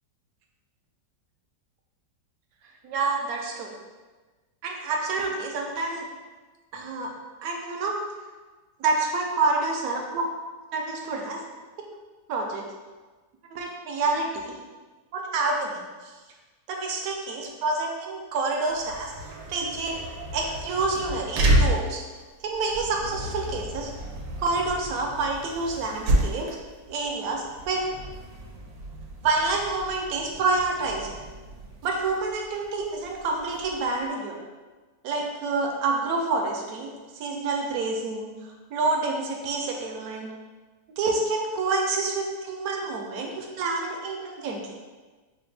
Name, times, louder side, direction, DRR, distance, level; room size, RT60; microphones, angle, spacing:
voice 1, 2.8-3.7 4.6-6.1 6.7-7.1 7.4-7.9 8.8-10.3 10.7-11.4 12.3-12.6 13.5-14.6 15.1-15.8 16.7-22.0 22.4-23.9 24.4-26.5 26.9-27.8 29.2-31.1 31.8-34.4 35.0-36.9 37.2-40.3 41.0-44.6, right 3 dB, 70° right, 1 dB, 0.9 m, -28 dB
sound 1, 18.7-34.0, right 1 dB, 90° right, 1.4 m, -31 dB
5.0 x 2.1 x 3.2 m, 1.3 s
omnidirectional pair, 2.0 m